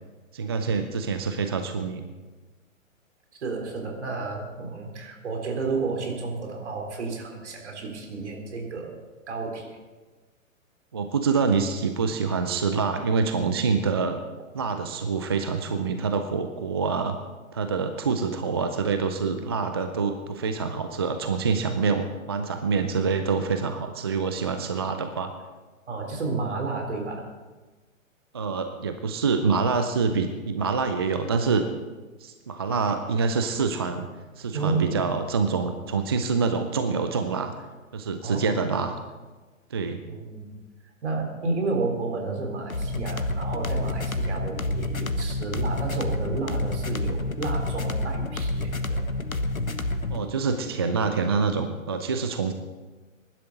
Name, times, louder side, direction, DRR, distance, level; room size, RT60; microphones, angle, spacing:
voice 1, 0.3-2.1 10.9-14.2 14.5-17.2 17.5-25.3 28.3-31.7 32.2-34.1 34.4-37.5 37.9-38.9 39.7-40.0 50.1-52.5, right 5 dB, 20° right, 7 dB, 0.4 m, -26 dB
voice 2, 3.4-8.9 9.3-9.7 25.9-27.3 34.5-35.0 38.2-38.7 40.1-40.5 41.0-49.0, right 3 dB, 55° right, 1 dB, 3.8 m, -31 dB
sound 1, 42.7-50.3, left 2 dB, 90° left, 1.2 m, -28 dB
22.0 x 12.0 x 4.0 m, 1.3 s
figure-of-eight pair, 120°, 40 cm